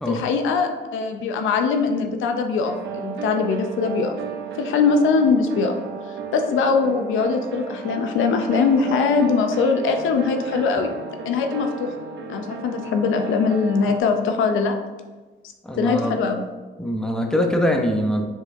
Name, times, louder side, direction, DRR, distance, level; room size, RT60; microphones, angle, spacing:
voice 1, 0.1-4.1 4.6-5.8 6.3-10.9 11.3-11.9 12.3-14.8 15.8-16.4, left 5 dB, 80° left, 5 dB, 0.5 m, -21 dB
sound 1, 2.6-14.0, right 6 dB, 60° right, 0.5 m, -34 dB
voice 2, 15.6-16.2 16.8-18.3, equal, 5° left, 2 dB, 0.6 m, -22 dB
4.8 x 4.0 x 2.6 m, 1.2 s
cardioid pair, 90°, 20 cm